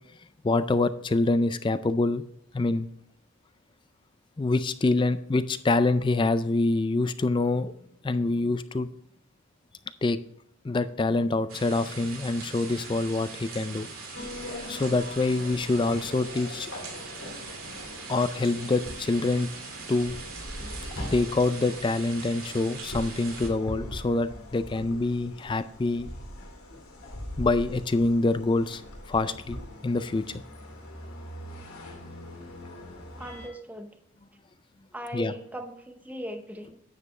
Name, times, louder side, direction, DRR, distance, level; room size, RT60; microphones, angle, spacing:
voice 1, 0.4-2.2 2.5-2.9 4.4-7.7 8.0-8.9 10.0-10.2 10.6-14.2 14.7-16.7 18.1-19.5 19.9-20.2 21.1-26.1 27.4-28.8 29.1-30.4 35.1-35.3, left 2 dB, 20° left, 13 dB, 0.3 m, -26 dB
sound 1, 11.5-23.5, right 4 dB, 80° right, 2.4 m, -41 dB
sound 2, 14.1-33.5, left 1 dB, 80° left, 2.7 m, -41 dB
voice 2, 33.2-34.0 34.9-36.8, equal, 5° right, 6 dB, 0.8 m, -39 dB
9.5 x 7.5 x 3.2 m, 0.74 s
head